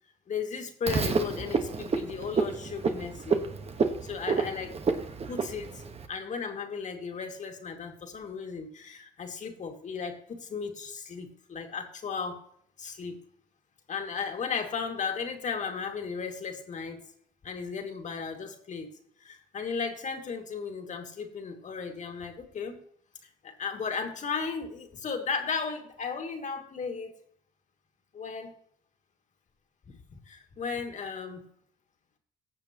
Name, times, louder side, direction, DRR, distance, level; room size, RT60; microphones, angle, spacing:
voice 1, 0.3-3.4 4.0-4.7 5.3-12.4 12.8-13.2 13.9-17.0 17.4-18.9 19.2-22.8 23.2-27.1 28.1-28.6 30.1-31.5, left 5 dB, 45° left, 4 dB, 2.2 m, -35 dB
Frog, 0.9-6.1, right 5 dB, 35° right, 1.3 m, -30 dB
15.5 x 6.8 x 3.0 m, 0.64 s
supercardioid pair, 80°, 17 cm